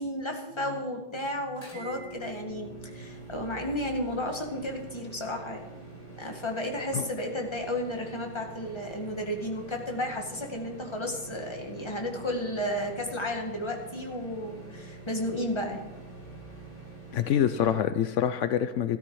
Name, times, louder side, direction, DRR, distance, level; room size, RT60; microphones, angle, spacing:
voice 1, 0.0-5.8 6.2-16.0, left 1 dB, 15° left, 2 dB, 1.7 m, -33 dB
sound 1, 1.6-17.8, right 3 dB, 55° left, 6.4 m, -46 dB
voice 2, 17.1-19.0, left 9 dB, 80° left, 11 dB, 0.6 m, -26 dB
13.5 x 13.0 x 4.8 m, 1.1 s
omnidirectional pair, 1.9 m